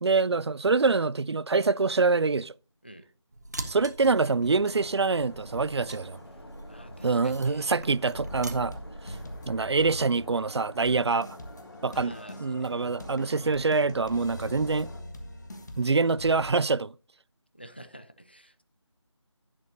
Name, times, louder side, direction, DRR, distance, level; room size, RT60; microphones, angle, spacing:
voice 1, 0.0-2.5 3.7-6.2 7.0-8.8 9.1-9.2 9.5-11.4 11.8-12.1 12.4-14.9 15.8-16.9, right 4 dB, 60° right, 0.4 m, -25 dB
sound 1, 3.3-9.5, right 2 dB, 35° right, 0.9 m, -43 dB
sound 2, 4.7-15.0, left 1 dB, 50° left, 2.0 m, -48 dB
voice 2, 6.7-7.7 11.9-12.7 17.5-18.6, right 1 dB, 20° left, 0.5 m, -49 dB
sound 3, 8.1-16.5, left 1 dB, 35° left, 1.5 m, -43 dB
11.0 x 10.5 x 2.7 m
figure-of-eight pair, 175°, 16 cm